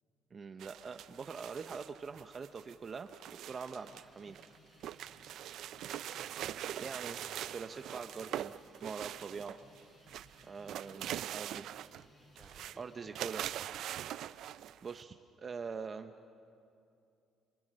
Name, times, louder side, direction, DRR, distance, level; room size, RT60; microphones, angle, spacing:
voice 1, 0.3-4.4 6.8-7.2 7.5-8.5 8.8-9.6 10.4-11.7 12.8-13.4 14.5-16.1, right 5 dB, 35° right, 8 dB, 0.7 m, -44 dB
sound 1, 0.6-4.0 4.3-9.8 10.1-12.1 12.4-12.8 13.2-15.0, right 11 dB, 70° right, 0.4 m, -43 dB
sound 2, 3.5-13.9, left 2 dB, 35° left, 3.8 m, -64 dB
voice 2, 5.0-5.3 6.8-7.9 12.4-13.6, equal, 10° left, 4 dB, 3.3 m, -59 dB
27.5 x 21.0 x 6.3 m, 2.6 s
cardioid pair, 115°, 0 cm